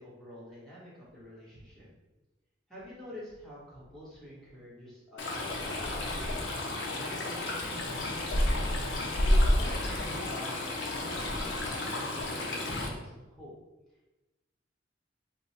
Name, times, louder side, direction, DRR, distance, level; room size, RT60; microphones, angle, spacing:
voice 1, 0.0-1.9 2.7-6.4 6.9-8.4 9.2-13.5, left 1 dB, 5° left, -9 dB, 1.1 m, -47 dB
Stream, 5.2-12.9, left 1 dB, 80° left, 0.6 m, -30 dB
3.0 x 2.2 x 4.1 m, 1.1 s
head